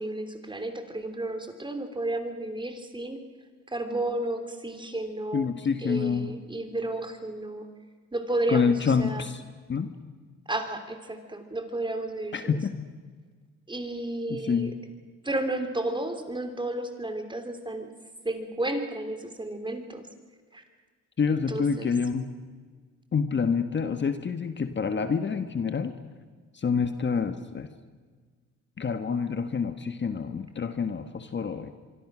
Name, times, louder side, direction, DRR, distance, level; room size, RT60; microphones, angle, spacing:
voice 1, 0.0-3.2 3.7-5.5 5.8-7.7 8.1-8.7 9.0-9.3 10.5-12.6 13.7-14.7 15.2-17.9 18.2-20.1 20.5-20.6 21.3-21.9, right 1 dB, 15° right, 7 dB, 3.3 m, -32 dB
voice 2, 5.3-6.3 8.5-9.4 9.7-9.9 12.3-12.7 14.3-14.7 21.2-22.3 23.1-25.9 26.5-27.7 28.8-31.7, left 5 dB, 40° left, 9 dB, 1.5 m, -27 dB
25.0 x 24.0 x 6.3 m, 1.5 s
cardioid pair, 90°, 30 cm